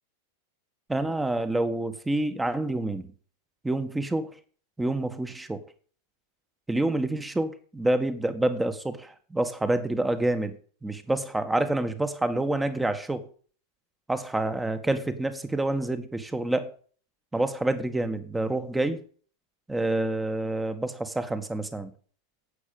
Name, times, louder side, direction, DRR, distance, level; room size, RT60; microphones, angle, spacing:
voice 1, 0.9-3.1 3.6-4.3 4.8-5.6 6.7-10.6 10.8-13.3 14.1-16.7 17.3-19.0 19.7-21.9, right 2 dB, 5° right, 1.6 m, -27 dB
11.5 x 8.8 x 7.0 m
figure-of-eight pair, 90°, 0 cm